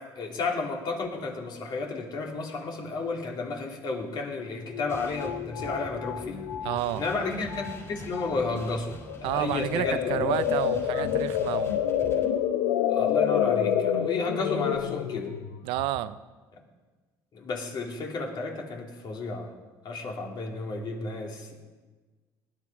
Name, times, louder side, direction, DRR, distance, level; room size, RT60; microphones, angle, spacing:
voice 1, 0.2-6.5 7.0-10.3 12.9-15.3 17.3-19.5 19.8-21.6, left 3 dB, 55° left, 0 dB, 3.0 m, -32 dB
sound 1, 4.4-4.5 4.7-7.2 7.5-7.8 8.1-8.6 9.1-16.0, left 9 dB, 90° left, 0.8 m, -28 dB
sound 2, 4.9-12.2, left 2 dB, 30° left, 6.0 m, -44 dB
voice 2, 6.6-7.0 9.2-11.8 15.6-16.2, right 14 dB, 80° right, 14 dB, 0.6 m, -30 dB
19.5 x 11.0 x 4.9 m, 1.3 s
supercardioid pair, 80°, 9 cm